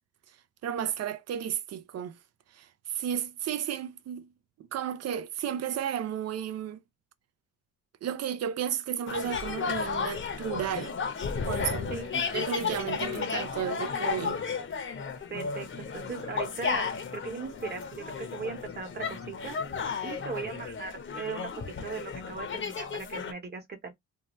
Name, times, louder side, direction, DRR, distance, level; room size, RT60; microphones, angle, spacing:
voice 1, 0.6-2.2 2.5-4.3 4.6-6.8 8.0-10.9 11.4-11.9 12.3-14.4, right 9 dB, 45° right, 0.5 m, -33 dB
sound 1, 9.1-23.3, left 6 dB, 35° left, 0.8 m, -33 dB
voice 2, 11.9-12.2 15.3-19.6 20.0-21.5 21.8-23.9, right 4 dB, 30° right, 1.1 m, -38 dB
2.7 x 2.1 x 3.1 m
cardioid pair, 90°, 35 cm